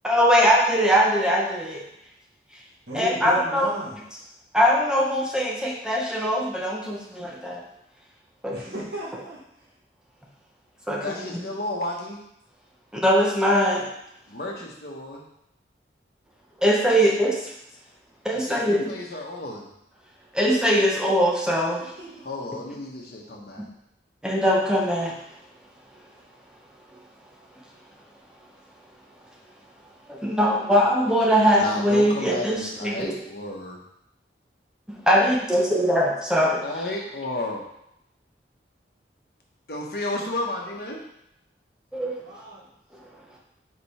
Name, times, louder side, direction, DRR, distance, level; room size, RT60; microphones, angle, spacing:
voice 1, 0.0-1.8 2.9-3.7 4.5-7.6 8.4-8.6 10.9-11.0 11.3-11.4 12.9-13.9 16.6-17.5 18.2-18.9 20.3-21.8 24.2-25.1 30.1-33.1 35.1-36.7 41.9-42.2, equal, 5° right, -3 dB, 0.8 m, -21 dB
voice 2, 2.9-4.3 8.5-9.4 22.0-22.2 42.0-42.7, right 1 dB, 60° right, -7 dB, 1.4 m, -36 dB
voice 3, 11.0-12.2 14.3-15.2 17.1-17.2 18.3-19.7 22.2-23.7 31.6-33.8 36.4-37.6 39.7-41.0, left 2 dB, 55° left, -1 dB, 1.2 m, -32 dB
5.2 x 4.6 x 4.3 m, 0.78 s
head